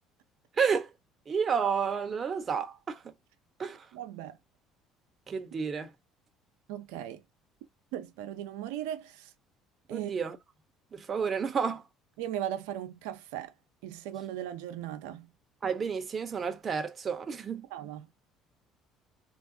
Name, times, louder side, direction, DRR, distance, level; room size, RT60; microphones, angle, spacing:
voice 1, 0.6-0.9 1.3-3.1 3.6-3.9 5.3-5.9 9.9-10.4 10.9-11.8 15.6-17.7, right 6 dB, 35° right, 0.9 m, -30 dB
voice 2, 3.9-4.4 6.7-7.2 7.9-9.3 9.9-10.1 12.2-13.5 13.8-15.3 17.7-18.1, right 11 dB, 85° right, 0.7 m, -37 dB
3.3 x 2.5 x 2.6 m
supercardioid pair, 80°, 0 cm